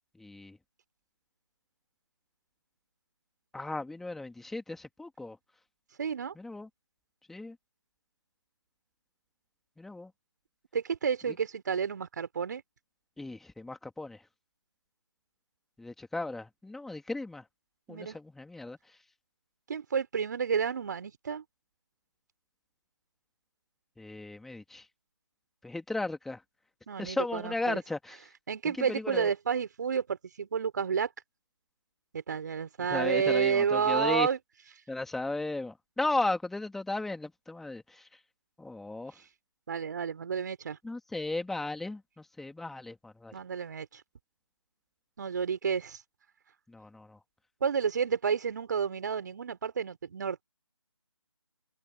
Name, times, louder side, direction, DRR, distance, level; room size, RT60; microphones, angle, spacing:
voice 1, 0.2-0.6 3.5-5.4 6.3-6.7 7.3-7.6 9.8-10.1 13.2-14.2 15.8-17.4 17.9-18.8 24.0-24.9 25.6-26.4 27.0-28.3 28.6-29.3 32.9-34.3 34.9-38.1 38.6-39.1 40.8-43.3 46.7-47.2, left 2 dB, ahead, 3.2 m, -35 dB
voice 2, 6.0-6.3 10.7-12.6 17.9-18.2 19.7-21.4 26.9-27.8 28.5-31.1 32.1-34.4 39.7-40.8 43.3-44.0 45.2-46.0 47.6-50.4, right 6 dB, 40° right, 5.1 m, -30 dB
figure-of-eight pair, 155°, 15 cm